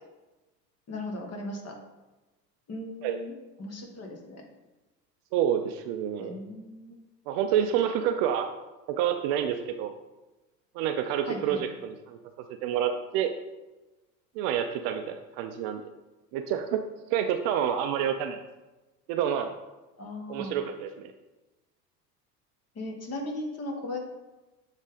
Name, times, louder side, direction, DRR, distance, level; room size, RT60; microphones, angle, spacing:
voice 1, 0.9-1.8 2.7-3.3 3.6-4.4 6.2-7.0 11.2-11.6 20.0-20.6 22.7-24.0, left 1 dB, 30° left, 2 dB, 1.5 m, -37 dB
voice 2, 5.3-6.4 7.3-8.5 8.9-9.9 10.7-12.2 12.6-13.3 14.4-15.9 16.3-16.8 17.1-18.4 19.1-19.5 20.3-21.1, right 9 dB, 45° right, 7 dB, 0.6 m, -28 dB
7.2 x 3.7 x 5.0 m, 1.1 s
figure-of-eight pair, 80°, 49 cm